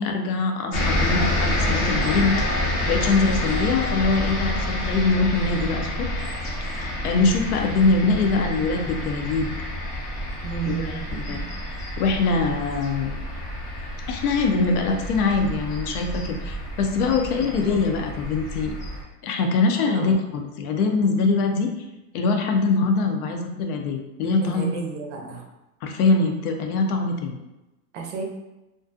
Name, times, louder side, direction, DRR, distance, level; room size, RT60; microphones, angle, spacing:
voice 1, 0.0-2.3 2.9-6.2 7.0-9.5 10.7-11.4 12.0-13.1 14.1-18.7 19.2-21.7 22.1-24.7 25.8-27.4, left 3 dB, 75° left, 4 dB, 0.6 m, -23 dB
sound 1, 0.7-19.0, left 1 dB, 30° left, 0.6 m, -28 dB
voice 2, 10.4-11.4 17.4-17.5 19.8-20.1 24.4-25.4 27.9-28.2, right 6 dB, 55° right, 2 dB, 0.5 m, -32 dB
2.5 x 2.2 x 2.5 m, 1.0 s
supercardioid pair, 160°, 45 cm